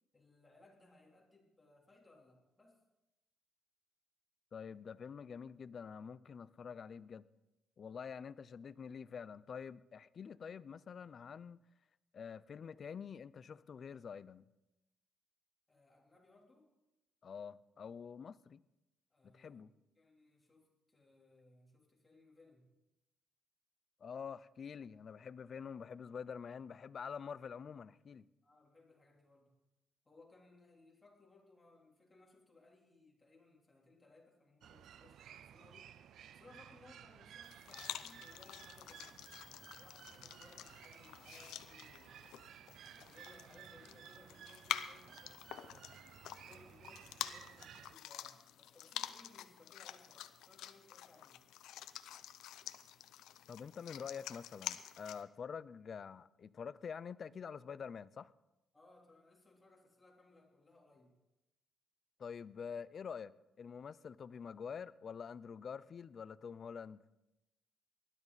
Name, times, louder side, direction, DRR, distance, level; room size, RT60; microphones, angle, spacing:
voice 1, 0.1-2.8 15.7-16.7 19.1-19.7 20.0-22.7 28.4-29.5 30.1-35.9 36.3-42.2 42.8-46.0 46.5-51.4 58.7-61.1, left 2 dB, 20° left, 3.4 m, -64 dB
voice 2, 4.5-7.2 7.8-11.6 12.1-14.5 17.2-18.6 19.2-19.7 24.0-28.3 53.5-58.3 62.2-67.0, left 6 dB, 50° left, 0.5 m, -47 dB
sound 1, 34.6-48.0, right 9 dB, 70° right, 0.5 m, -56 dB
sound 2, 37.4-55.2, left 12 dB, 85° left, 0.7 m, -48 dB
19.5 x 12.0 x 4.1 m
cardioid pair, 90°, 0 cm